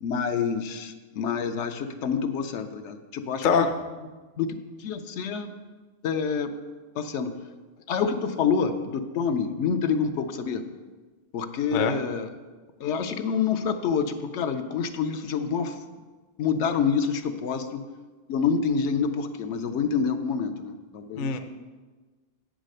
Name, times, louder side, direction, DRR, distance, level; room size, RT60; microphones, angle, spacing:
voice 1, 0.0-3.7 4.4-5.5 6.0-6.6 6.9-7.4 7.9-10.7 11.3-12.3 12.8-15.8 16.4-17.9 18.3-21.4, left 6 dB, 80° left, 7 dB, 0.9 m, -27 dB
voice 2, 3.4-3.7 11.7-11.9 21.1-21.4, left 6 dB, 55° left, 7 dB, 0.7 m, -23 dB
8.1 x 5.0 x 6.5 m, 1.3 s
omnidirectional pair, 1.2 m